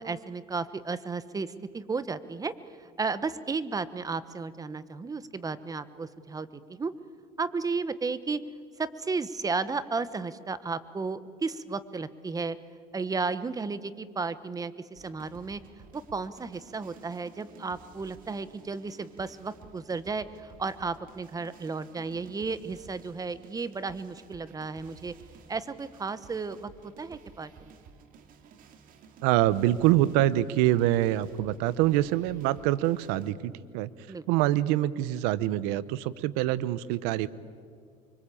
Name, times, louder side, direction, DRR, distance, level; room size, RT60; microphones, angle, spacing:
voice 1, 0.0-2.5 3.0-6.9 7.4-8.4 8.8-12.6 12.9-15.6 15.9-25.1 25.5-27.5 34.1-34.2, right 4 dB, 20° right, 14 dB, 1.2 m, -33 dB
sound 1, 15.0-33.3, right 6 dB, 60° right, 2.6 m, -54 dB
voice 2, 29.2-33.9 34.3-37.3, right 14 dB, 85° right, 18 dB, 0.9 m, -25 dB
25.0 x 24.0 x 8.6 m, 2.2 s
cardioid pair, 105°, 16 cm